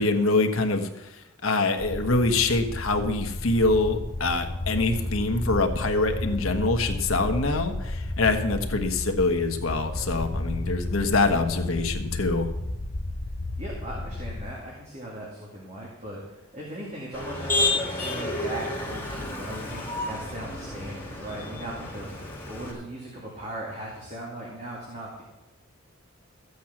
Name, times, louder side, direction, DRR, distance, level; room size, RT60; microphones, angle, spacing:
voice 1, 0.0-12.5, left 3 dB, 80° left, 6 dB, 1.3 m, -25 dB
sound 1, 1.8-14.5, left 1 dB, 35° left, 0.7 m, -32 dB
voice 2, 13.6-25.2, right 1 dB, 30° right, -4 dB, 2.3 m, -38 dB
Motor vehicle (road), 17.1-22.7, left 2 dB, 10° left, 2.5 m, -31 dB
14.0 x 8.3 x 6.0 m, 0.98 s
head